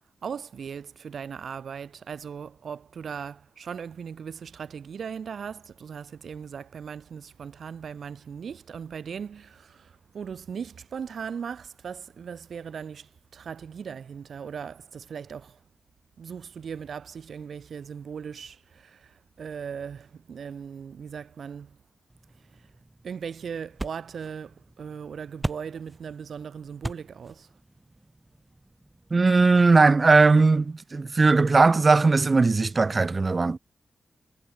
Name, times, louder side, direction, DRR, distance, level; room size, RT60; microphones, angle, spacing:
voice 1, 0.2-15.6 16.2-21.8 22.3-22.7 23.0-27.5, right 7 dB, 80° right, 5.6 m, -38 dB
sound 1, 22.1-29.2, right 1 dB, 15° right, 3.4 m, -40 dB
voice 2, 29.1-33.6, right 3 dB, 40° right, 0.8 m, -19 dB
cardioid pair, 80°, 0 cm